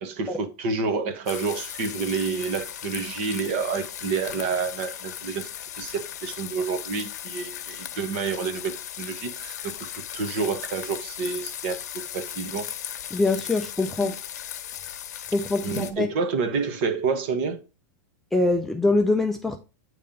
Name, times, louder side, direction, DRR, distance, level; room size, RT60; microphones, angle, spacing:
voice 1, 0.0-5.5 5.8-11.8 12.1-12.7 14.0-14.1 15.6-17.6, right 5 dB, 40° right, 1.1 m, -29 dB
sound 1, 1.3-15.9, left 10 dB, 70° left, 1.1 m, -37 dB
voice 2, 13.1-14.1 15.3-16.1 18.3-19.6, left 2 dB, ahead, 0.3 m, -23 dB
8.8 x 3.3 x 5.3 m
supercardioid pair, 175°, 9 cm